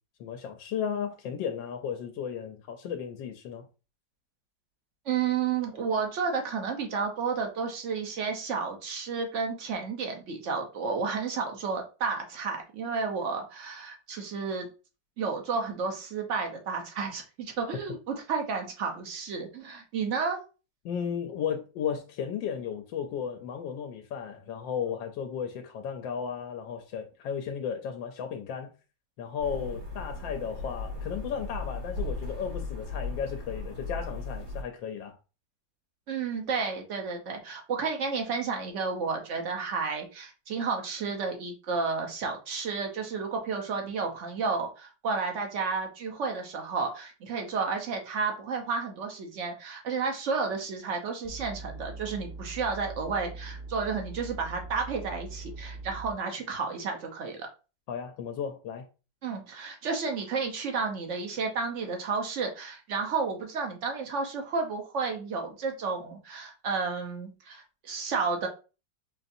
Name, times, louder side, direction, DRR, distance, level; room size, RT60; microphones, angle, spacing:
voice 1, 0.2-3.6 20.8-28.7 29.2-35.1 57.9-58.8, left 7 dB, 85° left, 1.3 m, -34 dB
voice 2, 5.1-14.7 15.2-20.4 36.1-57.5 59.2-68.5, right 5 dB, 55° right, 0.9 m, -31 dB
sound 1, 29.4-34.6, left 3 dB, 85° right, 3.0 m, -36 dB
sound 2, 51.2-56.1, right 3 dB, 5° right, 0.7 m, -42 dB
5.4 x 2.5 x 2.6 m
omnidirectional pair, 2.0 m